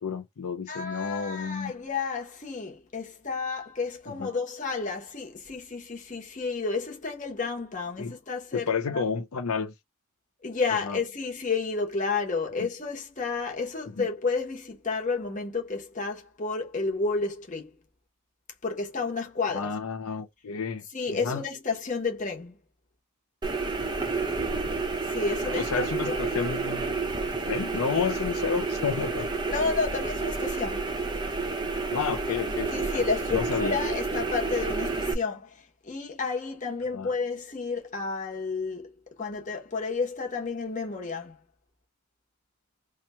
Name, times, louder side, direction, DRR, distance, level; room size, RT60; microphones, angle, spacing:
voice 1, 0.0-1.7 4.2-4.3 8.0-8.1 8.5-9.7 10.9-11.0 14.0-14.1 19.5-20.8 21.2-21.4 25.4-26.9 27.5-29.3 31.9-33.0 33.3-33.7 36.9-37.1, left 5 dB, 75° left, 0.5 m, -30 dB
voice 2, 0.7-9.1 10.4-17.7 18.6-19.7 20.9-22.6 25.0-26.2 29.5-30.9 32.7-38.9 39.2-41.4, left 4 dB, 35° left, 1.0 m, -31 dB
sound 1, 23.4-35.1, right 3 dB, 20° right, 0.6 m, -30 dB
2.9 x 2.4 x 4.2 m
head